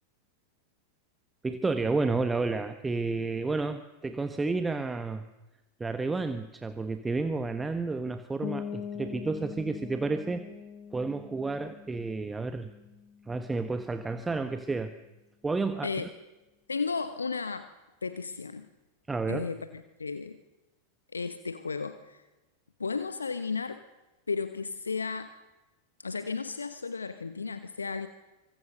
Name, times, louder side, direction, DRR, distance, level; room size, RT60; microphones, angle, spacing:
voice 1, 1.4-5.2 5.8-10.4 10.9-12.7 13.3-14.9 15.4-15.9 19.1-19.5, right 3 dB, 10° right, 10 dB, 1.3 m, -31 dB
sound 1, 8.4-14.0, left 8 dB, 35° left, 1.5 m, -42 dB
voice 2, 16.7-17.7 18.0-18.7 19.3-20.4 21.1-22.2 22.8-23.8 24.3-25.3 26.0-28.1, left 4 dB, 75° left, 11 dB, 1.2 m, -34 dB
25.5 x 24.5 x 6.7 m, 1.1 s
figure-of-eight pair, 90°, 0 cm